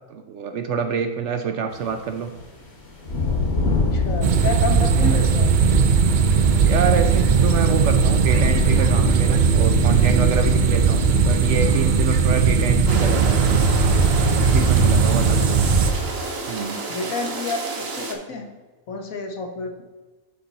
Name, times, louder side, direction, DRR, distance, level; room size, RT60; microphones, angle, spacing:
voice 1, 0.1-2.3 6.6-13.6 14.4-15.4 16.5-16.8, right 6 dB, 65° right, 7 dB, 0.8 m, -26 dB
sound 1, 1.7-13.3, left 3 dB, 45° left, 1.8 m, -29 dB
voice 2, 3.9-5.5 15.0-15.4 16.9-18.5 18.9-19.7, left 3 dB, 65° left, 3 dB, 1.3 m, -30 dB
sound 2, 4.2-15.9, right 5 dB, 90° right, 0.4 m, -18 dB
sound 3, 12.9-18.1, right 3 dB, 45° right, 1.2 m, -30 dB
11.0 x 4.3 x 3.9 m, 1.3 s
omnidirectional pair, 1.6 m